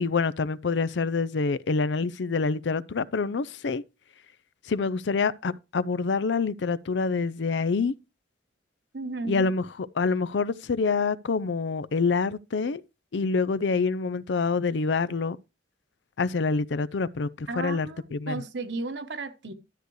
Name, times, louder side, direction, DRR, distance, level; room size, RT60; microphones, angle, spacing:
voice 1, 0.0-3.8 4.7-7.9 9.3-9.6 10.0-12.8 13.1-15.4 16.2-18.4, left 4 dB, 75° left, 0.5 m, -26 dB
voice 2, 8.9-9.5 17.5-19.5, right 3 dB, 70° right, 1.1 m, -34 dB
12.5 x 8.2 x 3.1 m
head